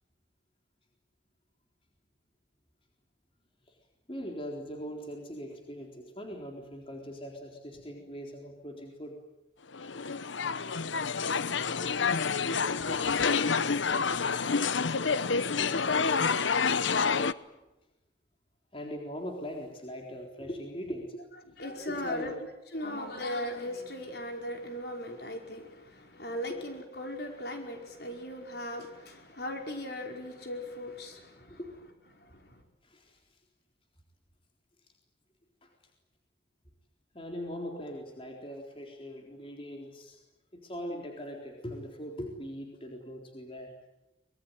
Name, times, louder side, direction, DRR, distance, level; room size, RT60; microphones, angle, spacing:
voice 1, 4.1-9.2 11.8-12.0 12.8-13.3 14.1-14.2 15.6-17.6 18.7-21.2 22.0-22.4 31.5-31.8 32.8-33.2 35.6-35.7 37.1-40.2 40.5-43.7, equal, 30° left, 1 dB, 4.0 m, -41 dB
sound 1, 9.7-17.3, left 5 dB, 80° left, 0.9 m, -28 dB
voice 2, 21.6-22.3 22.7-31.6 32.1-32.6, left 1 dB, 55° left, 3 dB, 5.1 m, -38 dB
25.0 x 22.0 x 9.4 m, 0.95 s
head